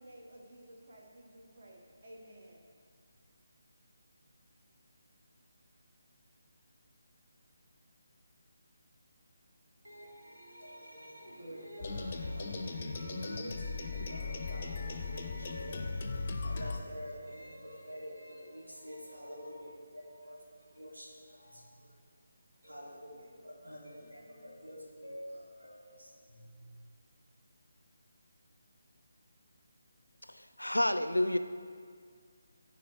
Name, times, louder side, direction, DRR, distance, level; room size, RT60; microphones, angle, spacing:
voice 1, 0.0-2.6, right 1 dB, 50° right, -2 dB, 1.3 m, -54 dB
voice 2, 9.8-21.9 22.6-26.8, equal, 80° right, -4 dB, 2.0 m, -47 dB
sound 1, 11.8-16.8, left 4 dB, 35° left, 0.5 m, -38 dB
voice 3, 30.3-31.4, left 1 dB, 85° left, 10 dB, 0.4 m, -29 dB
13.0 x 4.8 x 3.0 m, 2.1 s
figure-of-eight pair, 150°, 0 cm